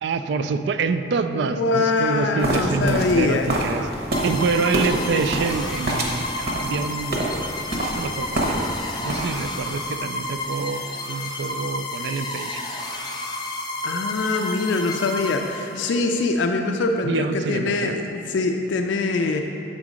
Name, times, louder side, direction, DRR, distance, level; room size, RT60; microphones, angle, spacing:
voice 1, 0.0-7.3 7.9-12.6 17.0-17.9, right 4 dB, 70° right, 10 dB, 0.3 m, -26 dB
voice 2, 1.3-3.5 13.8-19.4, left 3 dB, 90° left, 4 dB, 0.4 m, -23 dB
sound 1, 2.4-8.8 9.1-9.6, right 1 dB, 55° right, 0.9 m, -27 dB
sound 2, 4.1-16.0, left 2 dB, 25° left, 0.5 m, -31 dB
7.3 x 3.8 x 5.0 m, 2.8 s
head